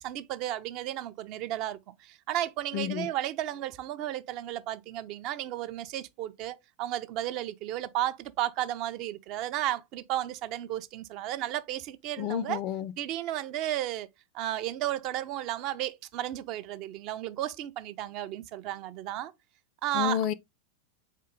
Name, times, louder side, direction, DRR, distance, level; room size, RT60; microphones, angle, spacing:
voice 1, 0.0-12.6 13.0-14.1 14.3-19.3 19.8-20.3, right 13 dB, 40° right, 0.4 m, -33 dB
voice 2, 2.7-3.1 12.2-12.9 19.9-20.3, left 10 dB, 40° left, 0.4 m, -30 dB
4.1 x 3.7 x 3.5 m
figure-of-eight pair, 90°, 0 cm